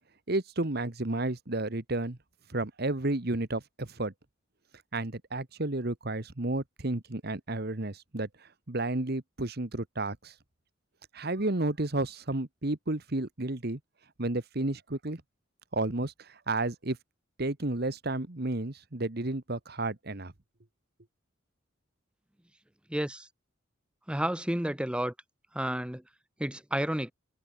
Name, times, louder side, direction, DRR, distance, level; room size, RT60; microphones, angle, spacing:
voice 1, 0.3-2.2 2.5-4.1 4.9-8.3 8.7-10.3 11.1-13.8 14.2-15.2 15.7-16.1 16.5-17.0 17.4-20.3, right 2 dB, 50° right, 1.5 m, -31 dB
voice 2, 22.9-23.3 24.1-25.1 25.5-26.0 26.4-27.1, right 1 dB, 5° right, 0.9 m, -31 dB
head